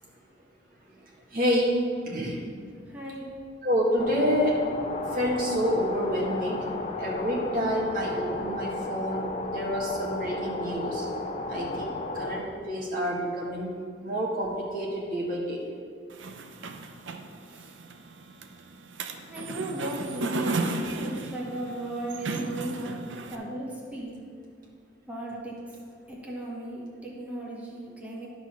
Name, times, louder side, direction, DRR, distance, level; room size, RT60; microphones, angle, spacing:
voice 1, 1.3-1.7 2.0-2.4 3.6-4.6 5.1-6.6 7.0-11.0 11.5-13.7 14.0-15.6, equal, 50° right, -4 dB, 1.7 m, -28 dB
voice 2, 2.9-3.2 17.6-17.7 19.3-20.7 21.0-23.0 23.3-24.1 25.1-25.5 26.1-28.3, right 1 dB, 10° right, -4 dB, 1.2 m, -36 dB
sound 1, 4.0-12.4, left 2 dB, 35° left, 0.6 m, -34 dB
sound 2, 16.1-23.4, right 3 dB, 90° right, 0.6 m, -34 dB
11.5 x 4.2 x 6.1 m, 2.1 s
head